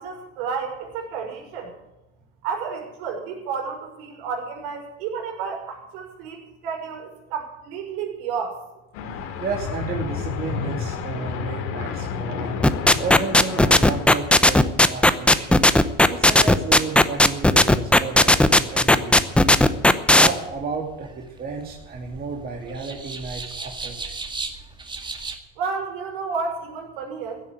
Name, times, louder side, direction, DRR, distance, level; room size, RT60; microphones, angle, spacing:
voice 1, 0.0-1.7 2.4-8.6 25.6-27.5, right 5 dB, 70° right, 2 dB, 6.0 m, -31 dB
sound 1, 8.9-14.1, left 6 dB, 65° left, 3.0 m, -30 dB
voice 2, 9.1-12.6 13.0-15.7 16.1-19.5 20.1-24.1, right 4 dB, 30° right, -1 dB, 2.7 m, -32 dB
sound 2, 12.6-20.3, left 1 dB, 5° left, 0.8 m, -14 dB
sound 3, 20.4-25.4, right 3 dB, 15° right, 2.0 m, -36 dB
16.0 x 8.9 x 9.1 m, 0.99 s
supercardioid pair, 120°, 30 cm